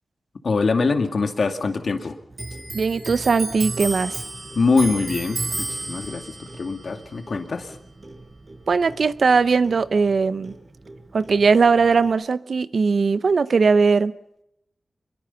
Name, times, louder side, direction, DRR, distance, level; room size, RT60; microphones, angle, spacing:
voice 1, 0.4-2.2 4.6-7.7, left 4 dB, 70° left, 6 dB, 2.2 m, -23 dB
Clock, 2.3-9.4 9.6-11.0 11.2-12.1, right 2 dB, 50° right, 5.9 m, -33 dB
voice 2, 2.7-4.2 8.7-10.5 11.1-14.1, right 4 dB, 70° right, 15 dB, 0.8 m, -19 dB
26.0 x 22.0 x 5.8 m, 0.81 s
wide cardioid pair, 85°, 0 cm